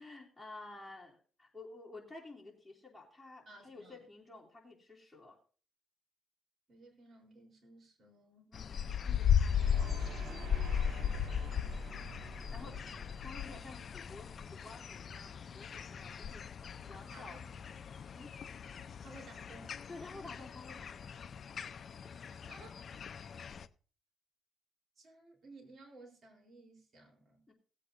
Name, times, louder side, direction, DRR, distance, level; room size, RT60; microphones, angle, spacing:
voice 1, 0.0-5.4 8.5-10.5 12.4-12.8 13.2-17.4 18.1-18.4 19.9-21.0 27.5-27.6, left 2 dB, 15° left, 3.1 m, -52 dB
voice 2, 3.5-4.1 6.7-8.6 12.6-12.9 17.1-17.6 19.0-19.9 21.5-22.0 22.5-22.7 25.0-27.4, right 2 dB, 45° right, 3.7 m, -57 dB
sound 1, 8.5-23.7, left 8 dB, 50° left, 0.6 m, -37 dB
sound 2, 9.5-14.5, equal, 70° right, 3.9 m, -46 dB
18.5 x 8.4 x 2.6 m
cardioid pair, 90°, 0 cm